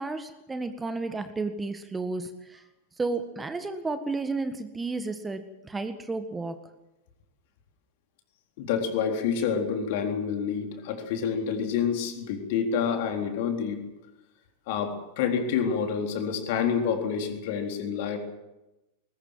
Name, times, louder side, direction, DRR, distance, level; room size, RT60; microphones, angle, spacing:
voice 1, 0.0-2.6 3.0-6.6, right 3 dB, 10° right, 10 dB, 1.6 m, -32 dB
voice 2, 8.6-13.8 14.7-18.2, left 7 dB, 50° left, 4 dB, 3.8 m, -28 dB
21.5 x 20.0 x 7.6 m, 0.98 s
figure-of-eight pair, 90°, 0 cm